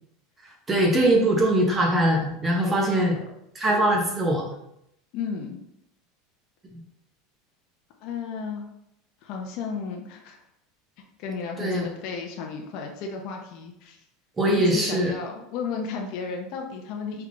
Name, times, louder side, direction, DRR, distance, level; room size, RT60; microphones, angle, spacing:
voice 1, 0.4-3.1 3.5-4.4 11.6-11.9 14.4-15.1, right 1 dB, 15° right, 0 dB, 0.8 m, -22 dB
voice 2, 2.6-3.2 5.1-5.6 8.0-8.7 9.2-10.4 11.2-14.0 14.4-17.3, left 5 dB, 50° left, 1 dB, 0.7 m, -33 dB
3.5 x 3.4 x 3.8 m, 0.78 s
supercardioid pair, 160°, 0 cm